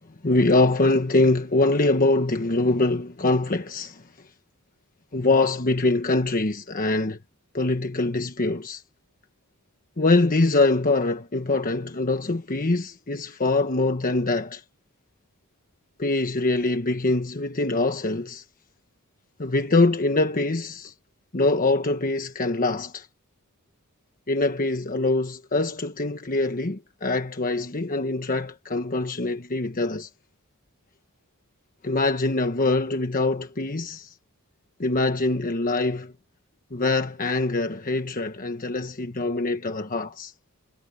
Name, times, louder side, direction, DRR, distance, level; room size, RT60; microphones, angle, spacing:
voice 1, 0.2-4.0 5.1-7.2 7.5-8.8 10.0-14.6 16.0-18.4 19.4-20.9 21.3-23.1 24.3-30.1 31.8-34.1 34.8-36.1 36.7-40.3, left 2 dB, 40° left, 1.2 m, -23 dB
head